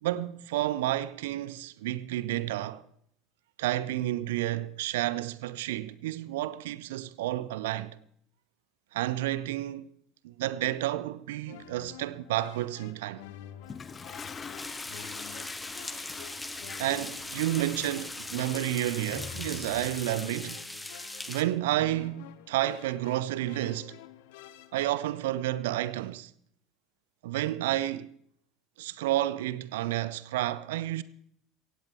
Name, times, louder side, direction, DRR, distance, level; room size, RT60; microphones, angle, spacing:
voice 1, 0.0-2.8 3.6-8.0 8.9-9.9 10.2-13.2 15.0-15.1 16.8-20.6 21.3-24.0 24.7-26.3 27.2-28.1 28.8-31.0, right 14 dB, 65° right, 0.6 m, -31 dB
sound 1, 11.5-25.2, left 12 dB, 60° left, 0.9 m, -49 dB
Toilet flush, 13.6-20.5, left 5 dB, 25° left, 0.5 m, -44 dB
sound 2, 14.6-21.4, left 1 dB, 5° left, 1.5 m, -40 dB
17.0 x 16.5 x 3.5 m
figure-of-eight pair, 70°, 0 cm